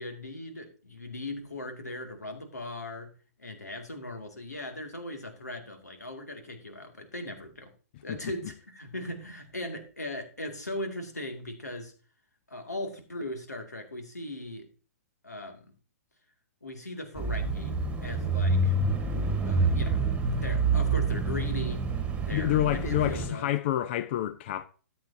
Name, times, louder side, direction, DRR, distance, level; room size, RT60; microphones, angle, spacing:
voice 1, 0.0-3.1 3.4-7.7 8.0-11.9 12.5-14.7 15.2-15.7 16.6-18.7 19.5-20.1 20.3-21.8 22.2-23.5, left 1 dB, 90° left, 2.2 m, -39 dB
Bicycle / Mechanisms, 17.2-23.3, right 3 dB, 15° right, 1.4 m, -27 dB
voice 2, 22.3-24.7, left 13 dB, 45° left, 0.5 m, -28 dB
13.0 x 8.2 x 2.7 m
figure-of-eight pair, 120°, 9 cm